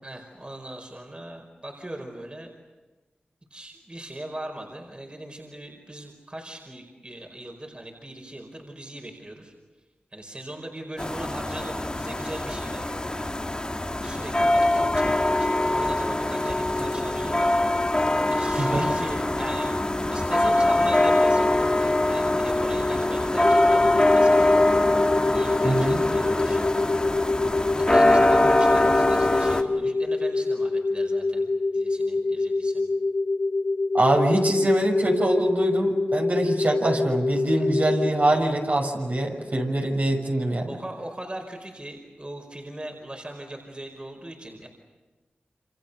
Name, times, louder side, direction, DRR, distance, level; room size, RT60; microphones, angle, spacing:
voice 1, 0.0-2.5 3.5-9.5 10.1-13.3 14.0-17.5 18.3-24.6 25.2-27.0 27.7-32.9 37.5-37.6 40.7-44.7, right 1 dB, 30° right, 2 dB, 5.1 m, -40 dB
sound 1, 11.0-29.6, left 1 dB, 25° left, 2.2 m, -23 dB
sound 2, 23.4-38.2, left 3 dB, 45° left, 2.2 m, -26 dB
voice 2, 25.6-26.0 33.9-40.7, right 1 dB, 50° right, 1 dB, 6.1 m, -24 dB
28.5 x 27.0 x 7.0 m, 1.2 s
cardioid pair, 50°, 4 cm